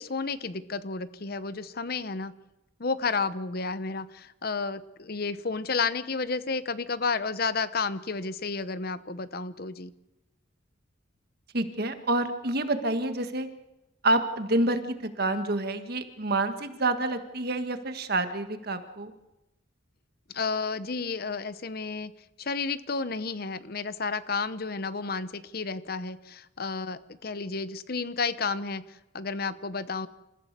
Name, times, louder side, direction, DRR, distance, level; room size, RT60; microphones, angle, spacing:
voice 1, 0.0-2.3 2.8-9.9 20.3-22.1 22.4-30.1, left 4 dB, 50° left, 14 dB, 0.8 m, -31 dB
voice 2, 11.5-13.5 14.0-19.1, right 2 dB, 50° right, 8 dB, 1.7 m, -28 dB
28.0 x 15.0 x 6.7 m, 0.94 s
head